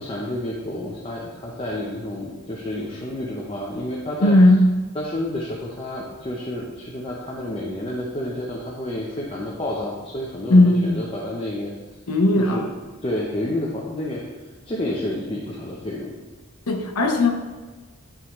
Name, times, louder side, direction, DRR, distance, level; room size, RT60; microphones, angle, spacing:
voice 1, 0.0-4.5 4.9-11.7 12.4-12.7 13.0-14.2 14.7-16.2, left 1 dB, 25° left, -3 dB, 0.7 m, -30 dB
voice 2, 4.2-4.6 10.5-11.0 12.1-12.6 16.7-17.3, left 2 dB, 85° left, 3 dB, 0.7 m, -16 dB
9.5 x 3.6 x 3.1 m, 1.3 s
head